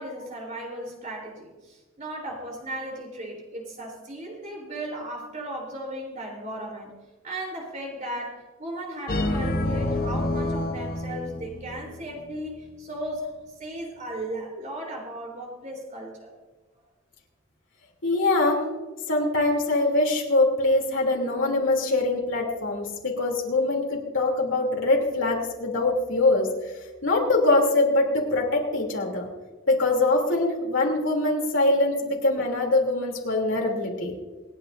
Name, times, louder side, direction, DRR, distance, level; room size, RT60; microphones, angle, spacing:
voice 1, 0.0-6.9 7.2-13.3 13.6-16.3, right 1 dB, 35° right, 0 dB, 3.8 m, -36 dB
sound 1, 9.1-12.0, left 1 dB, 45° left, 1.0 m, -28 dB
voice 2, 18.0-18.6 19.1-26.5 27.0-29.3 29.7-34.1, left 2 dB, 65° left, -1 dB, 3.2 m, -23 dB
27.5 x 9.2 x 2.7 m, 1.2 s
head